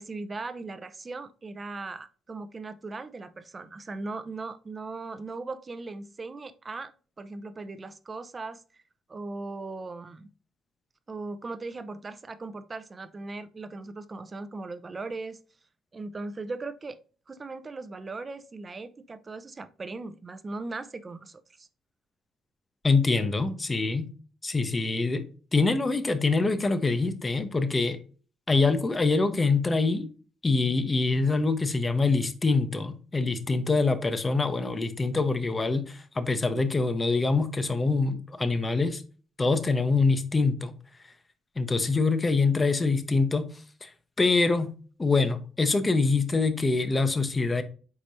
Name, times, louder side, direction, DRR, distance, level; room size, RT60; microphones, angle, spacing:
voice 1, 0.0-6.9 7.2-8.8 9.1-10.3 11.1-15.4 15.9-17.0 17.3-21.7, right 3 dB, 30° right, 0.5 m, -38 dB
voice 2, 22.8-24.1 24.4-25.3 25.5-28.0 28.5-30.1 30.4-39.0 39.4-40.7 41.6-43.5 43.8-43.9 44.2-44.7 45.0-47.6, left 3 dB, 25° left, 0.7 m, -25 dB
4.8 x 4.2 x 2.6 m
cardioid pair, 90°, 0 cm